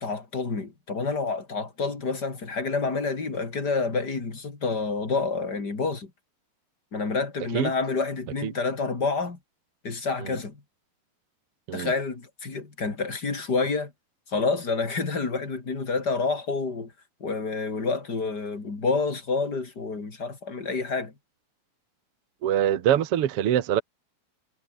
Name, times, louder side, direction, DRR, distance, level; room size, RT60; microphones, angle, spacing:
voice 1, 0.0-6.1 6.9-9.4 9.8-10.6 11.7-13.9 14.3-16.9 17.2-21.1, left 4 dB, 25° left, 3.9 m, -28 dB
voice 2, 22.4-23.8, right 11 dB, 60° right, 1.6 m, -24 dB
omnidirectional pair, 4.4 m